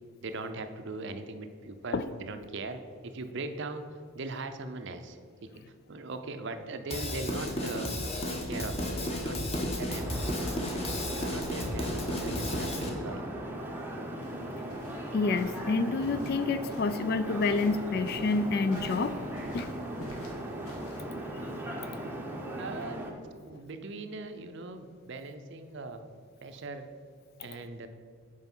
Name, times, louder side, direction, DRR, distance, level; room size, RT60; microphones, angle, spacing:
voice 1, 0.2-3.8 4.1-5.5 5.9-8.0 8.3-9.4 9.8-10.7 11.1-13.2 22.6-23.1 23.4-26.1 26.4-26.9 27.4-27.9, right 3 dB, 55° right, 8 dB, 0.5 m, -40 dB
Drum kit / Drum, 6.9-12.9, left 1 dB, 25° left, 1.0 m, -33 dB
sound 1, 9.9-23.1, right 1 dB, 10° right, 0.7 m, -38 dB
sound 2, 14.2-21.0, left 1 dB, 75° left, 1.4 m, -50 dB
voice 2, 15.1-19.2 19.5-19.7, left 3 dB, 45° left, 12 dB, 0.3 m, -28 dB
8.2 x 4.8 x 5.4 m, 2.1 s
head